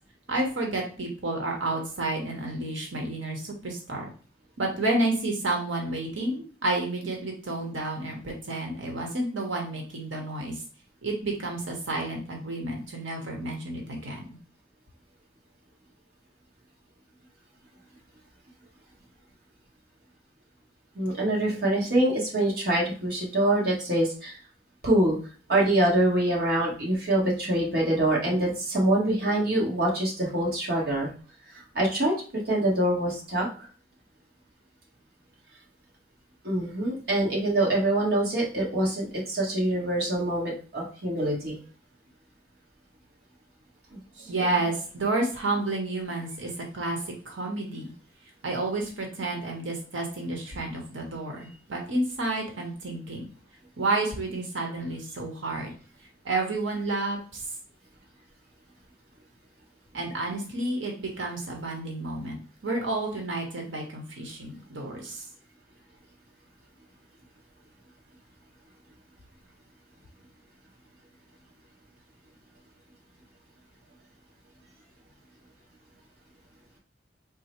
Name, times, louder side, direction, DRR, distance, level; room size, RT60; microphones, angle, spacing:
voice 1, 0.3-4.0 4.6-10.6 11.0-14.2 44.2-47.9 48.4-53.3 53.8-55.7 56.2-57.4 59.9-65.2, right 2 dB, 90° right, 1 dB, 1.0 m, -30 dB
voice 2, 20.9-24.4 24.8-25.2 25.5-31.1 31.5-33.7 36.4-41.6, right 1 dB, 55° right, -3 dB, 1.2 m, -25 dB
3.7 x 2.0 x 4.3 m, 0.39 s
head